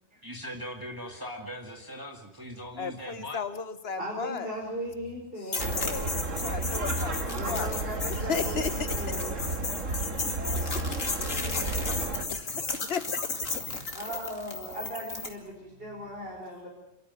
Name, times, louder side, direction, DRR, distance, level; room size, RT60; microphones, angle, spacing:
voice 1, 0.2-3.4, equal, 15° right, 1 dB, 2.2 m, -40 dB
voice 2, 2.8-4.5 5.7-7.1 7.5-7.7 8.3-8.7 10.5-11.0 12.3-13.0, left 6 dB, 55° left, 12 dB, 1.4 m, -34 dB
voice 3, 4.0-6.0 7.3-9.7 13.9-16.7, equal, 45° right, -3 dB, 5.9 m, -38 dB
sound 1, 5.5-15.3, left 3 dB, 90° left, 2.9 m, -34 dB
sound 2, 5.6-12.2, right 2 dB, 75° right, 2.3 m, -32 dB
28.0 x 13.5 x 9.5 m, 0.82 s
omnidirectional pair, 1.3 m